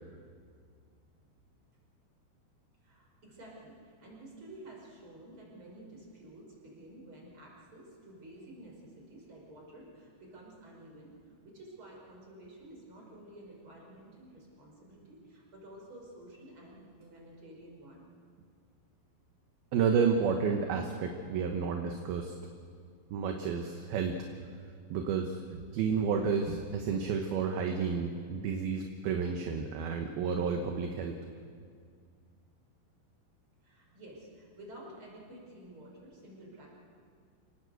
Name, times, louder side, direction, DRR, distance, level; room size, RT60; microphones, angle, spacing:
voice 1, 2.8-18.1 33.6-36.7, right 1 dB, 30° right, -2 dB, 6.0 m, -51 dB
voice 2, 19.7-22.3 23.1-24.2 24.9-25.4 25.7-31.2, right 6 dB, 70° right, 4 dB, 2.8 m, -31 dB
27.0 x 18.5 x 7.9 m, 2.2 s
omnidirectional pair, 5.0 m